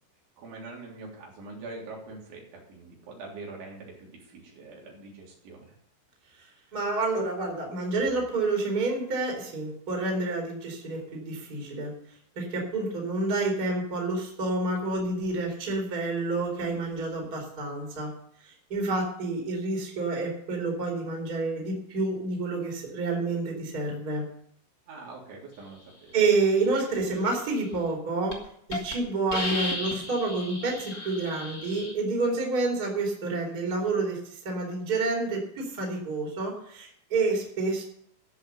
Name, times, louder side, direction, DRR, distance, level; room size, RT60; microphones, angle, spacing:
voice 1, 0.4-5.8 24.9-26.2, right 3 dB, 70° right, -2 dB, 5.7 m, -44 dB
voice 2, 6.4-11.9 12.4-18.1 18.4-24.3 26.1-28.4 28.7-37.8, right 3 dB, 20° right, 0 dB, 3.7 m, -29 dB
Hiss, 27.7-27.9 28.3-28.4 28.7-28.9 29.3-31.9, left 2 dB, 40° left, 1.2 m, -34 dB
14.5 x 8.5 x 7.0 m, 0.68 s
omnidirectional pair, 5.7 m